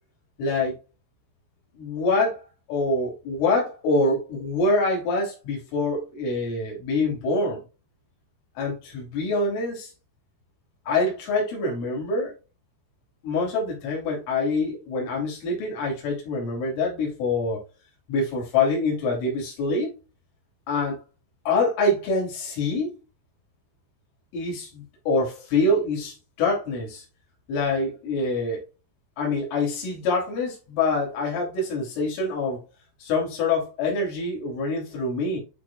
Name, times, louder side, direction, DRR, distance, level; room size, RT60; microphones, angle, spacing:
voice 1, 0.4-0.8 1.8-2.4 2.7-7.6 8.6-9.9 10.9-12.4 13.2-17.6 18.1-19.9 20.7-21.0 21.5-22.9 24.3-27.0 27.5-28.6 29.2-32.6 33.0-35.4, left 2 dB, 70° left, 5.6 m, -25 dB
11.0 x 4.9 x 2.3 m
omnidirectional pair, 5.9 m